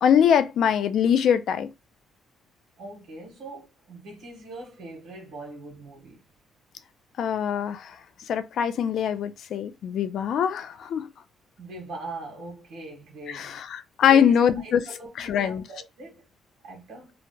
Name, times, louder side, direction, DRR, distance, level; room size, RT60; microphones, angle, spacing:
voice 1, 0.0-1.7 7.2-8.0 8.3-11.1 13.3-14.8 15.2-15.6, left 8 dB, 70° left, 0.4 m, -23 dB
voice 2, 2.8-6.2 11.6-13.6 14.1-16.2 16.6-17.1, right 2 dB, 80° right, 1.3 m, -41 dB
2.8 x 2.1 x 2.7 m
cardioid pair, 90°, 0 cm